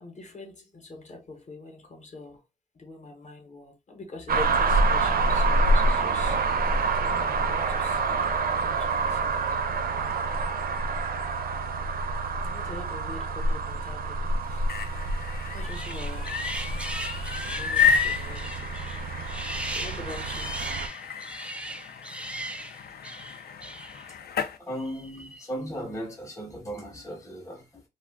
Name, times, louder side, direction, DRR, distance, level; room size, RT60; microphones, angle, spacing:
voice 1, 0.0-2.4 2.8-6.4 7.0-8.2 8.6-9.3 10.0-10.2 12.4-14.9 15.5-16.5 17.4-18.8 19.7-20.5, left 2 dB, 45° left, 0.9 m, -43 dB
sound 1, 4.3-20.9, right 3 dB, 65° right, 0.5 m, -27 dB
sound 2, 14.4-24.6, left 6 dB, 75° left, 0.4 m, -31 dB
sound 3, 15.7-24.1 24.8-25.4, right 1 dB, 5° right, 0.3 m, -38 dB
voice 2, 24.6-27.8, equal, 20° left, 0.7 m, -37 dB
2.3 x 2.2 x 3.4 m
wide cardioid pair, 120°, 16 cm